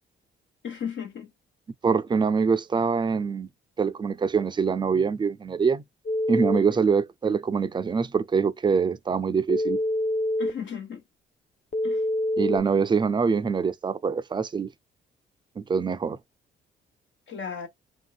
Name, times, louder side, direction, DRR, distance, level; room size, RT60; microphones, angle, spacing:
voice 1, 0.6-1.3 6.5-6.8 10.4-11.0 11.8-12.0 17.3-17.7, left 7 dB, 65° left, 1.3 m, -35 dB
voice 2, 1.8-3.5 3.8-5.8 6.3-9.8 12.4-14.7 15.6-16.2, right 5 dB, 25° right, 0.4 m, -24 dB
Telephone, 6.1-6.6 9.5-10.5 11.7-12.6, left 1 dB, 40° left, 0.8 m, -25 dB
3.2 x 2.7 x 2.3 m
cardioid pair, 90°, 20 cm